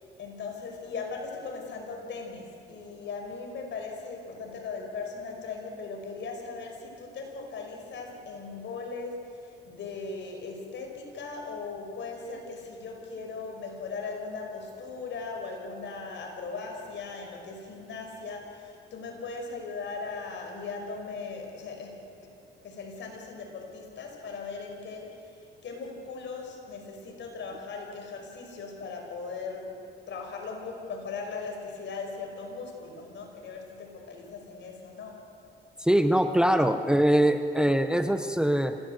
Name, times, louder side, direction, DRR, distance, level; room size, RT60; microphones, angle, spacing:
voice 1, 0.0-22.0 22.6-29.8 30.1-35.3, left 4 dB, 65° left, 2 dB, 5.4 m, -38 dB
voice 2, 35.8-38.8, right 1 dB, 5° right, 8 dB, 1.0 m, -23 dB
26.0 x 17.0 x 7.9 m, 2.7 s
cardioid pair, 90°, 20 cm